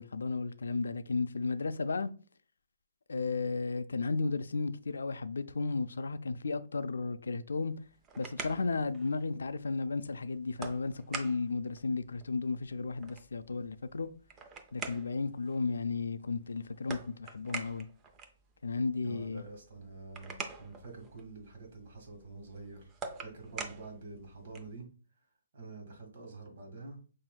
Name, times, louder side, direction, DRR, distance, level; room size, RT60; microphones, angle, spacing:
voice 1, 0.0-2.1 3.1-7.7 8.2-14.1 14.7-17.9 18.6-19.4, left 4 dB, 85° left, 0.4 m, -34 dB
sound 1, 7.7-24.8, right 4 dB, 15° right, 0.5 m, -47 dB
voice 2, 19.0-22.9 23.2-24.8 25.5-27.0, right 3 dB, 55° right, 1.7 m, -47 dB
5.7 x 2.7 x 2.3 m
hypercardioid pair, 155°, 0 cm